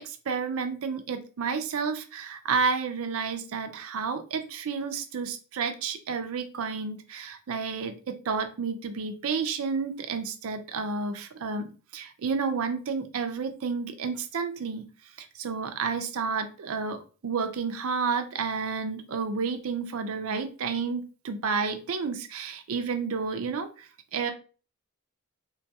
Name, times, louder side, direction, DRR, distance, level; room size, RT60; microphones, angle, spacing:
voice 1, 0.0-11.7 11.9-14.8 15.2-24.3, right 5 dB, 70° right, 7 dB, 0.4 m, -31 dB
3.8 x 2.3 x 2.7 m, 0.37 s
head